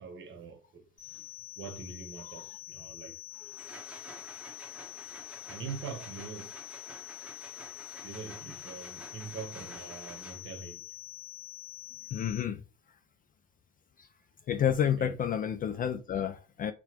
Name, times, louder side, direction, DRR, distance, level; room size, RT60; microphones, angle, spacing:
voice 1, 0.0-3.2 5.5-6.6 8.0-10.9 15.0-15.2 16.1-16.2, right 5 dB, 40° right, 1.0 m, -44 dB
sound 1, 1.0-12.4, left 17 dB, 50° left, 1.4 m, -46 dB
sound 2, 3.3-10.7, right 1 dB, 5° right, 1.0 m, -50 dB
voice 2, 12.1-12.6 14.0-14.1 14.5-16.7, left 9 dB, 30° left, 0.4 m, -30 dB
5.7 x 2.3 x 2.9 m
hypercardioid pair, 70°, 30 cm